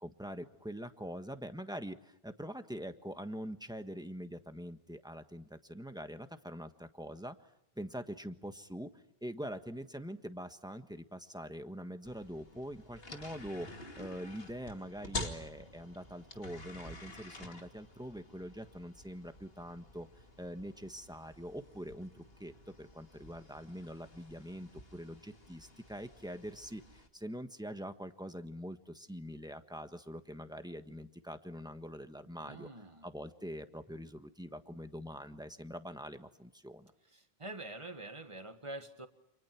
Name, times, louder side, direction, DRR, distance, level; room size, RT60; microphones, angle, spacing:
voice 1, 0.0-7.4 7.7-36.9, equal, 5° right, 8 dB, 1.5 m, -44 dB
sound 1, 12.0-27.1, left 1 dB, 70° left, 2.8 m, -49 dB
voice 2, 32.4-33.1 37.1-39.1, right 2 dB, 30° right, 8 dB, 1.8 m, -46 dB
29.5 x 27.5 x 6.0 m, 0.78 s
omnidirectional pair, 1.0 m